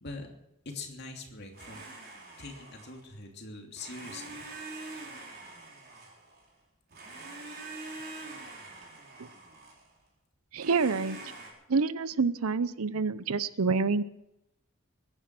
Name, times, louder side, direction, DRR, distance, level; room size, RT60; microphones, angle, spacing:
voice 1, 0.6-1.8 2.4-4.5, left 3 dB, 50° left, 2 dB, 2.8 m, -43 dB
Domestic sounds home sounds, 1.5-3.2 3.7-6.5 6.9-9.9 10.6-11.5, right 2 dB, 45° right, 4.2 m, -45 dB
voice 2, 10.5-11.2 11.7-14.0, right 4 dB, 90° right, 16 dB, 0.7 m, -27 dB
22.0 x 10.0 x 6.2 m, 0.86 s
head